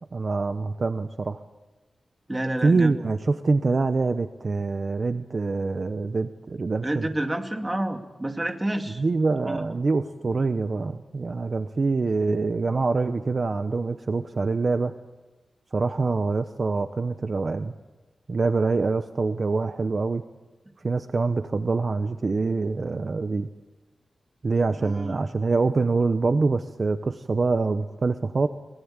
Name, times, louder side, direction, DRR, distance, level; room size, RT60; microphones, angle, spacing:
voice 1, 0.1-1.4 2.6-7.1 9.0-14.9 15.7-17.7 18.3-20.2 20.8-23.5 24.4-28.5, right 3 dB, 45° right, 9 dB, 0.9 m, -25 dB
voice 2, 2.3-2.9 6.8-9.0 9.4-9.7 24.8-25.3, right 1 dB, 15° right, 5 dB, 2.3 m, -29 dB
23.0 x 22.0 x 8.9 m, 1.2 s
wide cardioid pair, 125°, 0 cm